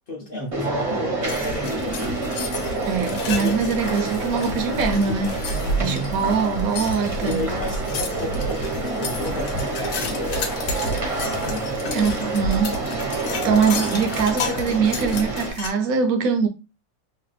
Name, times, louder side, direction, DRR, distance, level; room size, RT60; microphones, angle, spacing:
voice 1, 0.1-2.2 3.4-3.6 5.5-6.1 7.2-10.6 11.2-11.8, left 1 dB, 50° left, 0.7 m, -32 dB
sound 1, 0.5-15.5, right 2 dB, 35° right, 0.6 m, -28 dB
sound 2, 1.2-15.7, left 2 dB, 90° left, 1.1 m, -31 dB
voice 2, 2.9-5.4 5.8-7.4 11.9-12.8 13.4-16.5, right 5 dB, 75° right, 1.0 m, -22 dB
3.1 x 2.0 x 3.2 m
omnidirectional pair, 1.5 m